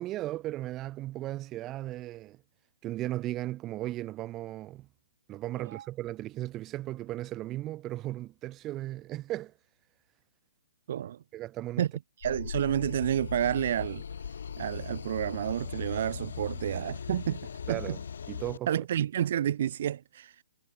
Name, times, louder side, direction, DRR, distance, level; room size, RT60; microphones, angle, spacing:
voice 1, 0.0-2.4 2.8-4.9 5.3-9.5 11.3-11.8 17.7-18.0 18.3-18.7, right 15 dB, 20° right, 1.1 m, -36 dB
voice 2, 10.9-11.2 11.8-11.9 12.2-14.0 14.6-17.4 17.7-18.0 18.7-20.4, right 10 dB, 50° right, 0.3 m, -30 dB
sound 1, 12.2-18.6, left 7 dB, 70° left, 0.8 m, -39 dB
hypercardioid pair, 150°, 0 cm